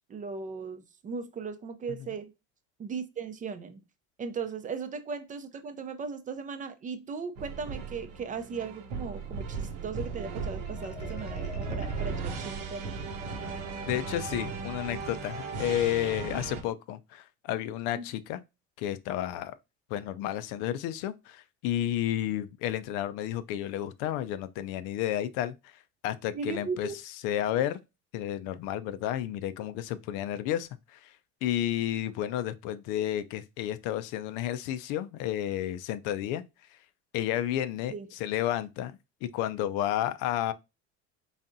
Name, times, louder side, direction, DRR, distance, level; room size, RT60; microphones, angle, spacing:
voice 1, 0.1-2.3 2.8-3.8 4.2-12.8 17.9-18.1 26.3-27.0 37.9-38.1, right 5 dB, 25° right, 0.5 m, -37 dB
sound 1, 7.4-16.6, right 5 dB, 90° right, 1.1 m, -36 dB
Marimba xylophone, 10.7-13.4, left 5 dB, 20° left, 0.7 m, -48 dB
voice 2, 13.9-18.4 18.8-19.5 19.9-25.7 26.0-26.9 27.2-27.8 28.1-31.1 31.4-36.4 37.1-40.5, left 12 dB, 80° left, 0.6 m, -31 dB
4.0 x 3.5 x 2.5 m
cardioid pair, 130°, 31 cm